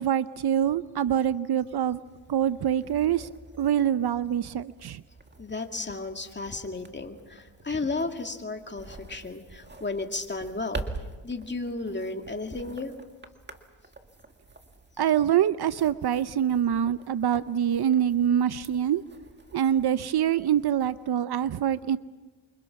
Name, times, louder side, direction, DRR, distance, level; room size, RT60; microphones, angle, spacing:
voice 1, 0.0-2.0 2.3-3.3 3.6-5.0 15.0-19.0 19.5-22.0, right 10 dB, 55° right, 14 dB, 0.8 m, -25 dB
sound 1, 2.0-21.2, right 3 dB, 25° right, 2.0 m, -46 dB
voice 2, 5.4-10.9 11.2-12.9, left 3 dB, 25° left, 5 dB, 2.3 m, -33 dB
28.5 x 25.0 x 6.0 m, 1.3 s
cardioid pair, 90°, 46 cm